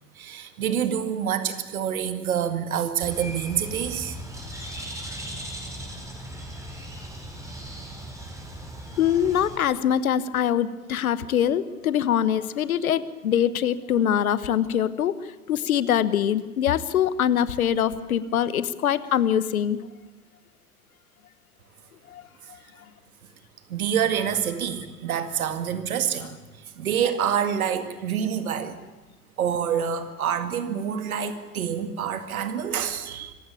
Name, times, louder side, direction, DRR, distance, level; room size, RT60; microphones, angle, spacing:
voice 1, 0.2-4.2 23.7-26.3 26.8-28.8 29.4-33.3, right 8 dB, 65° right, 9 dB, 2.1 m, -27 dB
Bird, 3.0-9.6, right 1 dB, 5° right, 5.0 m, -38 dB
voice 2, 9.0-15.1 15.5-19.8 22.1-22.2, left 9 dB, 65° left, 16 dB, 1.2 m, -23 dB
25.5 x 16.0 x 8.6 m, 1.2 s
figure-of-eight pair, 90°, 46 cm